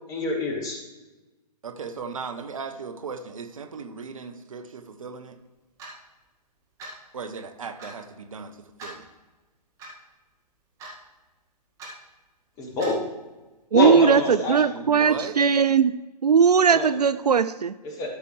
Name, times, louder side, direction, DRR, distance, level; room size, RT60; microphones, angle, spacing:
voice 1, 0.1-0.8 12.6-13.0 13.7-14.7 16.7-16.9 17.8-18.1, left 2 dB, 15° left, 1.2 m, -26 dB
voice 2, 1.6-5.4 7.1-9.1 14.7-15.5, right 5 dB, 55° right, 0.9 m, -37 dB
Clock, 5.8-6.0 6.8-7.0 7.8-7.9 8.8-9.0 9.8-9.9 10.8-11.0 11.8-11.9 12.8-13.0, right 2 dB, 15° right, 2.0 m, -40 dB
voice 3, 13.7-15.9 16.2-17.7, right 6 dB, 70° right, 0.4 m, -19 dB
13.0 x 6.8 x 3.3 m
figure-of-eight pair, 130°, 21 cm